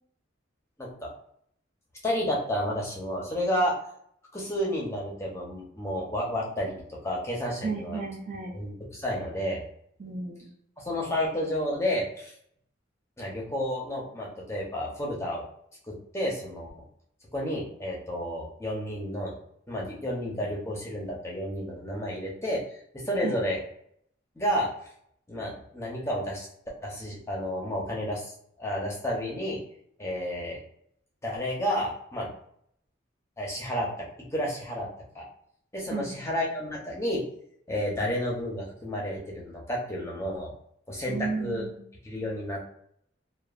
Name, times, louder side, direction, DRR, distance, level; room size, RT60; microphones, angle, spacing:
voice 1, 0.8-1.1 2.0-3.7 4.3-8.0 8.5-9.6 10.8-12.3 13.2-15.4 15.9-16.7 17.3-19.3 19.7-22.6 22.9-23.6 24.4-24.7 25.3-26.5 26.8-28.3 28.6-29.6 30.0-30.6 31.2-32.3 33.4-34.1 34.3-34.9 35.1-35.3 35.7-37.2 37.7-40.5 40.9-41.6 42.0-42.7, equal, 15° left, -3 dB, 0.7 m, -31 dB
voice 2, 7.6-8.6 10.0-10.5 23.2-23.4 35.9-36.1 41.1-41.8, right 4 dB, 45° right, -3 dB, 0.4 m, -33 dB
3.0 x 2.2 x 2.4 m, 0.68 s
head